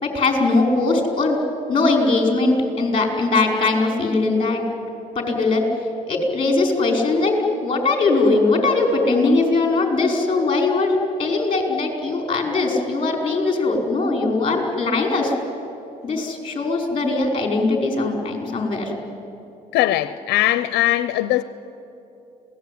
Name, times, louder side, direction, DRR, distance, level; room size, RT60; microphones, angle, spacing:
voice 1, 0.0-1.4 1.7-4.6 5.2-5.7 6.1-15.3 16.0-18.9, left 3 dB, 30° left, 2 dB, 5.2 m, -20 dB
voice 2, 19.7-21.4, left 14 dB, 85° left, 13 dB, 0.7 m, -20 dB
27.0 x 18.0 x 9.5 m, 2.9 s
cardioid pair, 110°, 17 cm